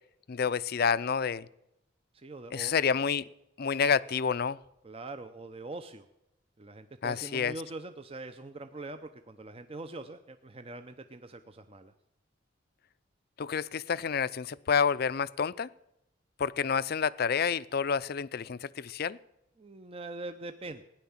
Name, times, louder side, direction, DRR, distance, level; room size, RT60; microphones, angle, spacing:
voice 1, 0.3-1.5 2.5-3.3 3.6-4.6 7.0-7.5 13.4-15.7 16.4-19.2, left 6 dB, 50° left, 18 dB, 0.5 m, -29 dB
voice 2, 2.1-2.7 4.8-6.1 6.6-11.9 19.6-20.8, right 2 dB, 30° right, 8 dB, 0.7 m, -43 dB
17.0 x 10.5 x 7.2 m, 0.85 s
head